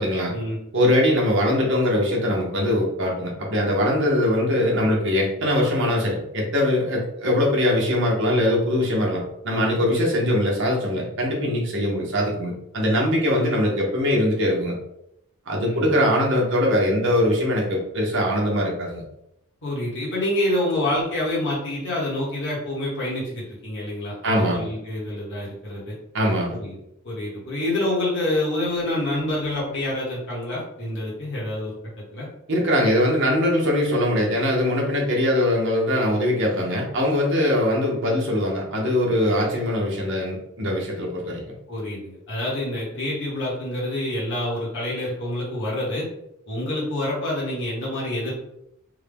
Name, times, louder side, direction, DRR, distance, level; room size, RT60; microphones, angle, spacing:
voice 1, 0.0-0.3 0.7-14.7 15.5-19.0 24.2-24.7 26.1-26.6 32.5-41.4, left 1 dB, 60° right, -2 dB, 1.0 m, -22 dB
voice 2, 15.6-16.0 19.6-25.9 26.5-26.8 27.0-32.3 41.7-46.1 46.5-48.3, left 1 dB, 55° left, -6 dB, 1.1 m, -27 dB
3.6 x 2.2 x 3.4 m, 0.80 s
head